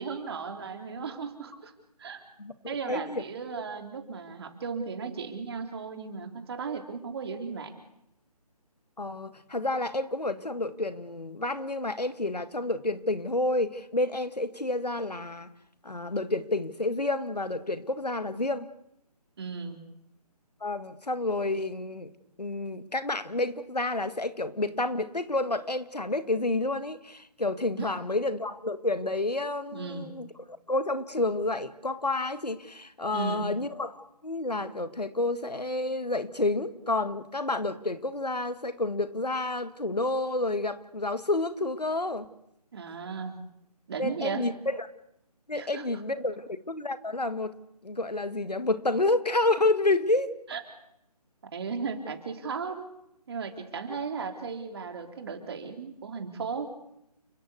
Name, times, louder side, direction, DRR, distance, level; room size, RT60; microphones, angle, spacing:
voice 1, 0.0-1.7 2.0-2.2 2.7-7.7 19.4-19.8 27.8-28.0 29.7-30.1 33.1-33.5 42.7-43.4 43.9-44.5 45.5-45.9 50.5-50.6 51.4-52.9 53.3-56.7, right 5 dB, 40° right, 5 dB, 3.5 m, -36 dB
voice 2, 2.4-3.2 9.0-15.5 15.8-18.7 20.6-22.1 22.4-42.3 44.0-44.9 45.5-47.6 47.8-50.3, left 2 dB, 85° left, 12 dB, 1.9 m, -29 dB
30.0 x 15.5 x 8.4 m, 0.80 s
figure-of-eight pair, 150°, 20 cm